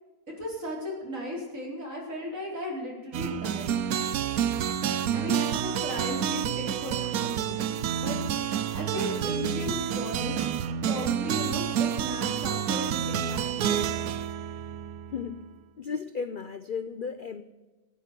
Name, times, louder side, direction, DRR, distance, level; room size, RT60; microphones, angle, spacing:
voice 1, 0.4-3.8 5.1-8.2 8.5-13.9, equal, 55° right, -3 dB, 4.8 m, -36 dB
sound 1, 3.1-15.4, right 9 dB, 70° right, 1.1 m, -29 dB
voice 2, 15.1-15.5 15.8-17.4, left 6 dB, 65° left, 11 dB, 0.5 m, -34 dB
15.5 x 9.6 x 6.7 m, 1.2 s
omnidirectional pair, 1.7 m